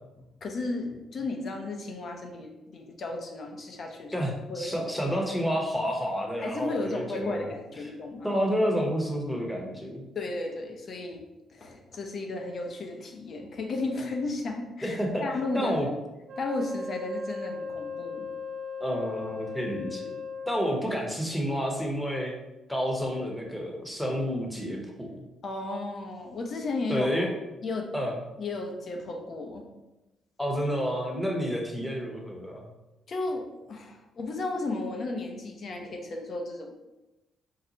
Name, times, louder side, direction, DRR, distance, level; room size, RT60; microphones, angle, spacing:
voice 1, 0.4-4.9 6.4-8.4 10.1-11.2 11.5-15.9 16.4-18.3 25.4-27.1 27.6-27.9 28.4-29.6 31.5-31.6 33.1-36.7, left 2 dB, 50° left, 2 dB, 0.7 m, -34 dB
voice 2, 4.1-7.5 8.2-10.0 14.8-15.3 15.5-15.9 18.8-20.2 20.5-22.3 22.7-25.3 26.9-27.3 27.9-28.2 30.4-32.7, equal, 5° left, 0 dB, 0.8 m, -29 dB
Wind instrument woodwind instrument, 16.3-20.9, left 4 dB, 70° right, 0.5 m, -37 dB
4.1 x 2.1 x 3.9 m, 1.0 s
cardioid pair, 90°, 0 cm